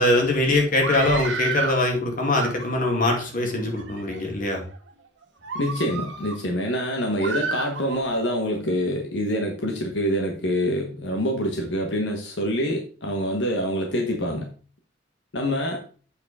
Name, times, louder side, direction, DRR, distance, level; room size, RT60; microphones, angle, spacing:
voice 1, 0.0-4.6, left 2 dB, 50° left, 2 dB, 2.3 m, -22 dB
Screaming, 0.7-1.8 2.2-3.0 3.6-4.2 4.7-4.9 5.4-6.4 7.2-8.2, right 4 dB, 80° right, 1.6 m, -31 dB
voice 2, 5.5-14.5 15.3-15.8, equal, 75° left, 2 dB, 1.2 m, -26 dB
8.3 x 4.8 x 4.8 m, 0.40 s
head